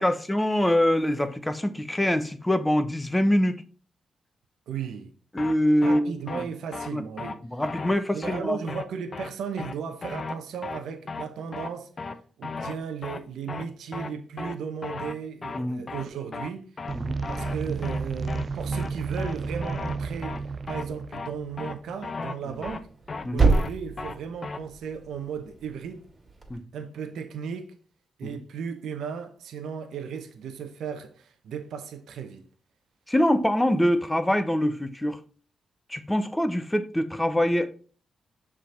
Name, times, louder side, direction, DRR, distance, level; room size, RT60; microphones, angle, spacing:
voice 1, 0.0-3.6 5.3-6.4 6.9-7.0 7.5-8.6 15.5-15.8 16.9-17.2 23.2-23.5 26.5-26.6 28.2-28.3 33.1-35.2 35.9-37.7, left 1 dB, 10° left, 1.0 m, -24 dB
voice 2, 4.7-5.1 5.8-7.4 8.1-11.9 12.4-16.6 17.3-22.9 23.3-26.0 26.7-27.7 28.2-32.4, right 7 dB, 80° right, 0.8 m, -35 dB
sound 1, 5.4-5.5 5.8-6.0 6.3-6.4 6.7-6.9 7.2-7.3 7.6-8.0 8.2-8.4 8.7-8.8 9.1-9.3 9.6-9.7 10.0-10.3 10.6-10.8 11.1-11.3 11.5-11.7 12.0-12.2 12.4-12.7 13.0-13.2 13.5-13.7 13.9-14.1 14.4-14.6 14.8-15.2 15.4-15.6 15.9-16.0 16.3-16.5 16.8-16.9 17.2-17.6 17.8-18.0 18.3-18.4 18.7-18.9 19.2-19.3 19.6-20.0 20.2-20.4 20.7-20.8 21.1-21.3 21.6-21.7 22.0-22.3 22.6-22.8 23.1-23.3 23.5-23.7 24.0-24.2 24.4-24.6, left 4 dB, 45° left, 0.8 m, -35 dB
sound 2, 16.9-22.1, right 4 dB, 50° right, 0.3 m, -32 dB
Thump thud, 22.5-26.6, right 3 dB, 30° right, 2.4 m, -28 dB
6.5 x 3.8 x 4.5 m
supercardioid pair, 60°, 0 cm